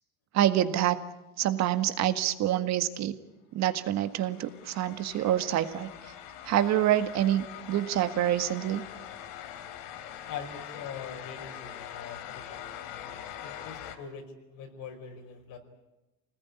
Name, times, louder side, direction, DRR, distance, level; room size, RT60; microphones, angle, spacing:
voice 1, 0.3-1.0 1.4-3.1 3.5-5.9 6.5-8.8, right 12 dB, 50° right, 10 dB, 1.8 m, -26 dB
sound 1, 3.9-14.0, left 10 dB, 80° left, 2.7 m, -43 dB
voice 2, 10.2-15.6, left 6 dB, 60° left, 4 dB, 5.3 m, -43 dB
26.0 x 19.5 x 9.7 m, 0.99 s
supercardioid pair, 120°, 36 cm